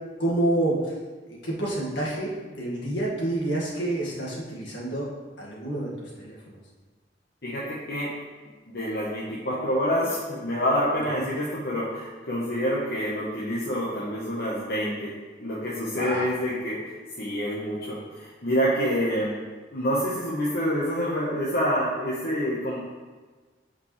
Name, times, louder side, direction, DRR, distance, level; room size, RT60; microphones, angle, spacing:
voice 1, 0.2-0.9 1.3-5.1 5.4-6.6 15.9-16.3, right 1 dB, 75° left, -5 dB, 1.9 m, -28 dB
voice 2, 7.4-8.1 8.7-15.1 15.4-19.4 19.7-22.8, equal, 60° left, -7 dB, 1.1 m, -27 dB
8.7 x 5.1 x 3.2 m, 1.4 s
head